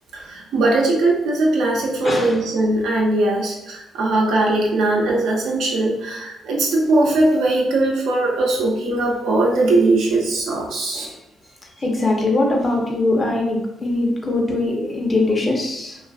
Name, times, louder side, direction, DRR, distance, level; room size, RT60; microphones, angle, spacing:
voice 1, 0.1-11.1, right 2 dB, 80° right, -1 dB, 0.6 m, -20 dB
voice 2, 11.8-16.0, left 2 dB, 30° left, 0 dB, 0.7 m, -21 dB
2.4 x 2.4 x 2.4 m, 0.85 s
cardioid pair, 90°, 0 cm